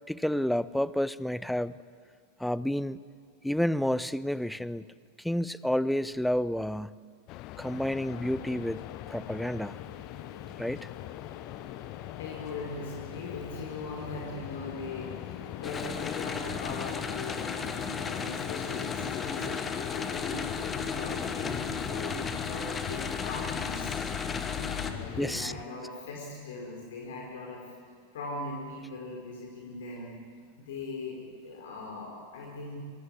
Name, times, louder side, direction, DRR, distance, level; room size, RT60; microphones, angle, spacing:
voice 1, 0.1-1.7 2.4-3.0 3.4-4.8 5.2-6.9 7.6-8.8 9.1-9.8 10.6-10.9 25.2-25.5, left 1 dB, ahead, 18 dB, 0.7 m, -30 dB
sound 1, 7.3-25.6, left 16 dB, 40° left, 0.6 m, -40 dB
sound 2, 8.3-23.4, left 1 dB, 75° left, 4.8 m, -52 dB
voice 2, 12.2-24.0 24.5-27.7 28.1-30.2 30.6-32.8, left 3 dB, 60° left, 0 dB, 4.6 m, -40 dB
sound 3, 15.6-24.9, left 5 dB, 20° left, 2.0 m, -35 dB
24.5 x 24.0 x 9.1 m, 2.1 s
figure-of-eight pair, 90°, 0 cm